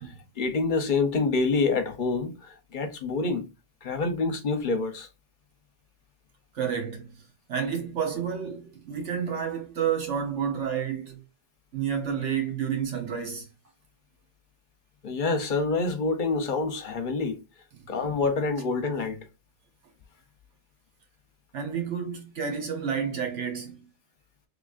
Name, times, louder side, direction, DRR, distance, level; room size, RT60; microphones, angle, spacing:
voice 1, 0.4-3.5 3.8-5.1 15.0-17.4 17.9-19.2, left 3 dB, 50° left, 0.8 m, -27 dB
voice 2, 6.5-7.2 7.5-11.2 11.7-13.5 17.7-17.9 21.5-23.8, right 7 dB, 70° right, 1.5 m, -30 dB
3.6 x 3.4 x 2.4 m
omnidirectional pair, 1.3 m